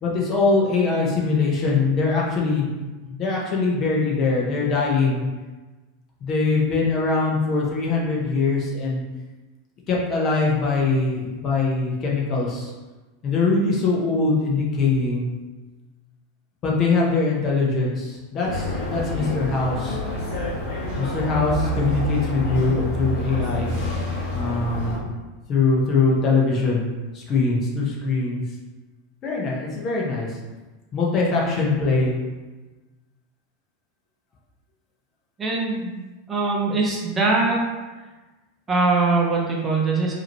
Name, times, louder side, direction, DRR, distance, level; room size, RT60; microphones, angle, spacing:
voice 1, 0.0-2.7 3.1-5.3 6.2-9.0 9.9-12.7 13.2-15.3 16.6-20.0 21.0-23.7 24.3-25.1 25.5-26.9 27.1-28.4 29.2-30.3 30.9-32.1, left 3 dB, 35° left, -3 dB, 1.1 m, -22 dB
sound 1, 18.4-25.0, left 1 dB, 65° left, 1.2 m, -27 dB
voice 2, 35.4-36.0 36.3-37.6 38.7-40.1, right 3 dB, 20° right, -3 dB, 0.9 m, -22 dB
4.8 x 3.0 x 3.1 m, 1.2 s
hypercardioid pair, 115°, 0 cm